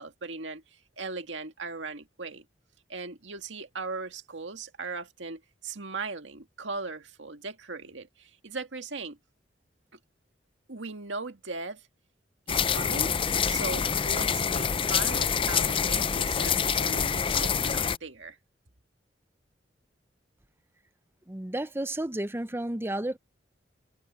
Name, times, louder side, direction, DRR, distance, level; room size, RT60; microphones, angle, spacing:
voice 1, 0.0-2.5 2.9-9.2 10.7-11.9 12.5-13.1 13.5-18.4, right 3 dB, 90° right, 2.0 m, -38 dB
sound 1, 12.5-18.0, left 7 dB, 30° left, 0.5 m, -26 dB
voice 2, 21.3-23.2, right 1 dB, 15° right, 0.7 m, -32 dB
head